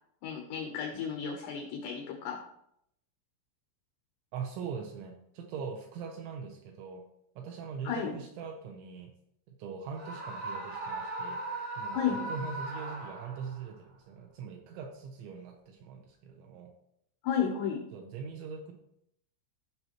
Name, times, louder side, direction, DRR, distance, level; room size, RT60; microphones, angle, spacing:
voice 1, 0.2-2.4 7.8-8.2 11.9-12.3 17.2-17.8, left 7 dB, 80° left, 2 dB, 2.4 m, -33 dB
voice 2, 4.3-7.0 7.4-9.1 9.5-11.4 11.8-16.7 17.9-18.7, right 6 dB, 80° right, 2 dB, 2.8 m, -41 dB
Screaming, 9.9-13.6, right 2 dB, 35° right, 1.1 m, -38 dB
16.0 x 5.6 x 3.0 m, 0.76 s
omnidirectional pair, 6.0 m